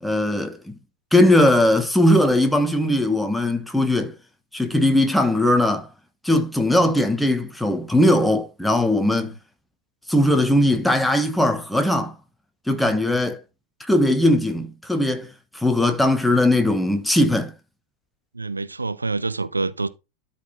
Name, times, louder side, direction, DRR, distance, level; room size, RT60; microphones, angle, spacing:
voice 1, 0.0-0.7 1.1-4.1 4.5-5.9 6.2-9.3 10.1-12.1 12.7-13.4 13.9-15.3 15.5-17.5, left 1 dB, 5° left, 1.2 m, -19 dB
voice 2, 18.3-19.9, right 3 dB, 80° right, 0.6 m, -27 dB
12.5 x 4.3 x 4.0 m
figure-of-eight pair, 90°, 0 cm